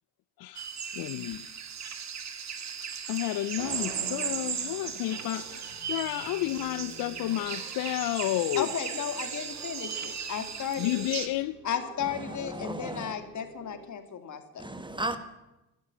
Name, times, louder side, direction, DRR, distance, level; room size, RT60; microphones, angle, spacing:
sound 1, 0.5-11.3, right 7 dB, 45° right, 1.8 m, -37 dB
voice 1, 0.9-1.4 3.1-5.6 5.9-8.7 10.8-11.6, left 15 dB, 65° left, 0.6 m, -31 dB
sound 2, 3.6-6.5, right 7 dB, 85° right, 2.1 m, -45 dB
sound 3, 5.1-13.8, right 2 dB, 65° right, 5.4 m, -51 dB
voice 2, 8.5-11.1 11.6-14.6, left 8 dB, 50° left, 2.3 m, -34 dB
voice 3, 12.0-13.1 14.6-15.2, right 1 dB, 10° right, 1.6 m, -35 dB
13.0 x 11.5 x 8.5 m
supercardioid pair, 75°, 38 cm